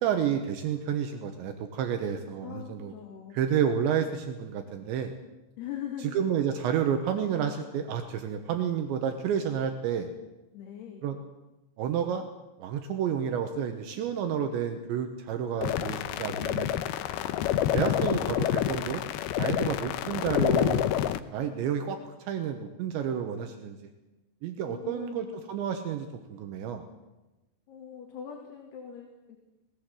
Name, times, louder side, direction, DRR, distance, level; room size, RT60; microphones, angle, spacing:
voice 1, 0.0-2.9 3.3-5.1 6.1-10.1 11.0-11.2 11.8-12.3 12.6-16.7 17.7-19.0 19.4-20.9 21.3-23.8 24.4-26.8, right 8 dB, 75° right, 5 dB, 3.3 m, -30 dB
voice 2, 2.4-3.4 5.6-6.1 10.5-11.1 24.6-25.2 27.7-29.4, left 9 dB, 60° left, 1 dB, 4.1 m, -41 dB
sound 1, 15.6-21.2, left 11 dB, 90° left, 2.2 m, -28 dB
19.0 x 18.5 x 7.8 m, 1.1 s
omnidirectional pair, 5.5 m